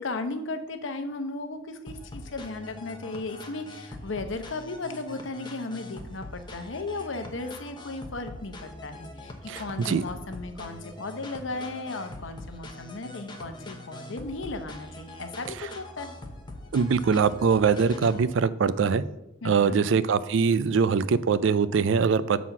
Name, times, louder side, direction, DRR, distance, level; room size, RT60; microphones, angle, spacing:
voice 1, 0.0-16.2 19.4-19.8, left 3 dB, 70° left, 8 dB, 0.8 m, -36 dB
sound 1, 1.9-18.3, left 1 dB, 20° left, 0.9 m, -43 dB
voice 2, 9.5-10.0 16.7-19.0 19.4-22.4, right 5 dB, 65° right, 16 dB, 0.4 m, -23 dB
7.3 x 4.1 x 5.9 m, 0.88 s
head